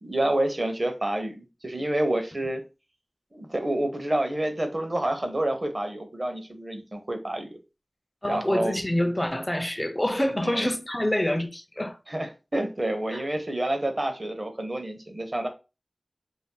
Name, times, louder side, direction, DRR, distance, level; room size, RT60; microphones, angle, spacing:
voice 1, 0.0-2.6 3.3-7.6 8.2-8.8 10.4-10.7 12.1-15.5, right 1 dB, 40° right, 0.7 m, -28 dB
voice 2, 8.2-12.0 13.1-13.3, left 1 dB, 20° left, 0.4 m, -26 dB
2.6 x 2.1 x 3.7 m
wide cardioid pair, 55°, 0 cm